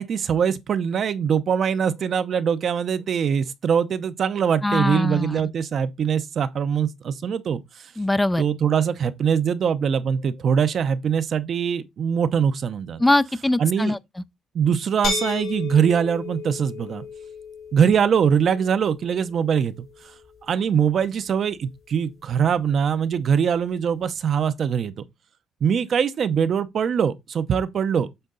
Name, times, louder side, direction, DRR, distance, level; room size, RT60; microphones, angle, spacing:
voice 1, 0.0-7.9 8.4-13.0 13.6-14.0 14.5-17.0 17.7-19.9 20.5-25.0 25.6-28.1, right 7 dB, 55° right, 0.7 m, -22 dB
voice 2, 4.6-5.4 8.0-8.4 13.0-14.0, left 1 dB, 10° left, 0.4 m, -21 dB
sound 1, 15.0-20.8, left 4 dB, 70° left, 3.7 m, -34 dB
7.9 x 3.9 x 3.8 m
cardioid pair, 90°, 0 cm